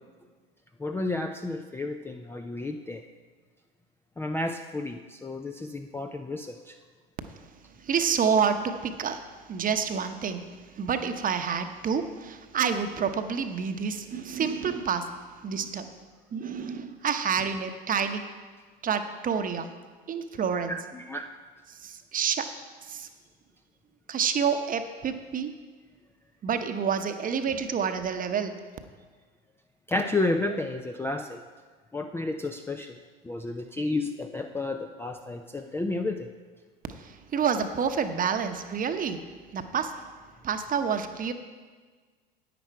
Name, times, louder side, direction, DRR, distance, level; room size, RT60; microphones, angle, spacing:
voice 1, 0.8-3.1 4.2-6.8 20.7-21.3 29.9-31.4 31.9-33.0 33.2-36.3, left 2 dB, 10° left, 5 dB, 0.5 m, -31 dB
voice 2, 7.8-9.2 9.5-10.5 10.7-15.1 15.4-15.9 16.3-18.2 18.8-19.7 20.1-20.8 21.7-22.5 22.8-23.1 24.1-25.5 26.4-28.6 36.9-39.2 39.5-39.9 40.4-41.3, right 6 dB, 30° right, 8 dB, 0.9 m, -28 dB
10.5 x 9.2 x 4.6 m, 1.5 s
hypercardioid pair, 80°, 29 cm